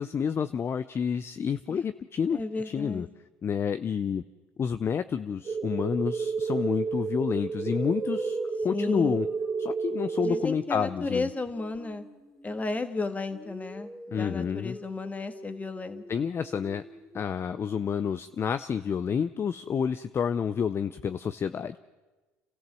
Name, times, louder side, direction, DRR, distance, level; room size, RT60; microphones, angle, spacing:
voice 1, 0.0-3.1 3.4-4.2 4.6-8.4 8.6-9.3 9.6-11.3 14.1-14.8 16.1-16.8 17.1-21.8, left 7 dB, 40° left, 12 dB, 0.6 m, -29 dB
voice 2, 2.3-3.1 8.7-9.2 10.2-12.1 12.4-16.0, left 3 dB, 20° left, 9 dB, 1.8 m, -33 dB
sound 1, 5.4-10.4, right 5 dB, 45° right, 2.6 m, -31 dB
sound 2, 6.5-6.7 7.5-12.9 13.3-17.3, equal, ahead, 3.0 m, -43 dB
30.0 x 14.0 x 7.6 m, 1.2 s
supercardioid pair, 80°, 7 cm